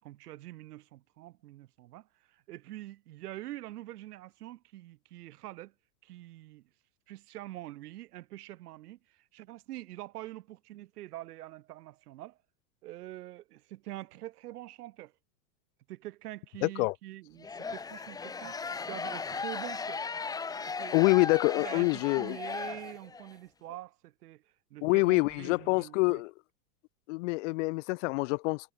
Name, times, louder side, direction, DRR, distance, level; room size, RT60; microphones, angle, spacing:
voice 1, 0.0-5.7 6.0-6.6 7.1-12.4 12.8-15.1 15.9-20.1 20.6-21.0 21.6-24.4 24.7-26.2, right 16 dB, 65° right, 5.9 m, -45 dB
voice 2, 16.6-16.9 20.9-22.4 24.8-26.3 27.1-28.7, left 26 dB, 45° left, 2.7 m, -26 dB
sound 1, 17.4-23.3, left 5 dB, 10° left, 1.2 m, -37 dB
supercardioid pair, 160°, 49 cm